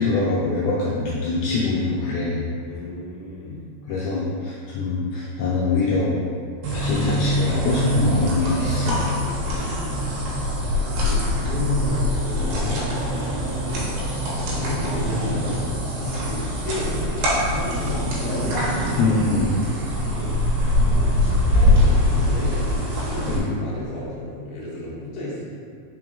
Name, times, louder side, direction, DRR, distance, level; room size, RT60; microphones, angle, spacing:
voice 1, 0.0-2.5 3.9-6.2 6.7-9.1 19.0-19.6 23.3-23.4, left 3 dB, 85° left, -6 dB, 2.1 m, -23 dB
voice 2, 2.6-3.6 9.4-10.5 11.0-12.8 13.4-13.9 14.5-18.4 19.7-20.4 21.1-25.5, left 2 dB, 65° left, -7 dB, 1.4 m, -33 dB
sound 1, 6.6-23.4, left 1 dB, 70° right, 2.9 m, -23 dB
5.9 x 4.6 x 3.8 m, 2.1 s
omnidirectional pair, 5.0 m